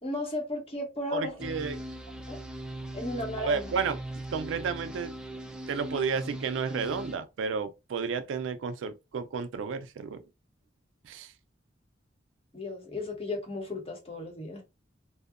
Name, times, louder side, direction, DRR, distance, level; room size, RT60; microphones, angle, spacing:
voice 1, 0.0-1.5 2.3-2.4 2.9-3.7 12.5-14.6, left 2 dB, 30° left, 0.8 m, -35 dB
voice 2, 1.1-1.8 3.4-4.0 4.3-5.1 5.7-10.2 11.1-11.3, right 5 dB, 90° right, 0.4 m, -32 dB
sound 1, 1.4-7.2, right 1 dB, 5° right, 0.3 m, -40 dB
2.6 x 2.1 x 2.4 m
head